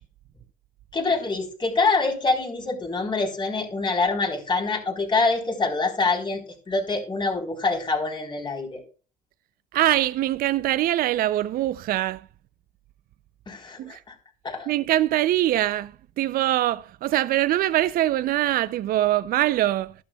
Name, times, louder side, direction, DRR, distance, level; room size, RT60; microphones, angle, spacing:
voice 1, 0.9-6.4 6.7-8.8 13.5-14.1 14.4-14.7, left 3 dB, 25° left, 3.8 m, -25 dB
voice 2, 9.7-12.3 13.8-14.0 14.7-19.9, right 14 dB, 60° right, 0.5 m, -23 dB
12.5 x 12.0 x 2.3 m
cardioid pair, 110°, 17 cm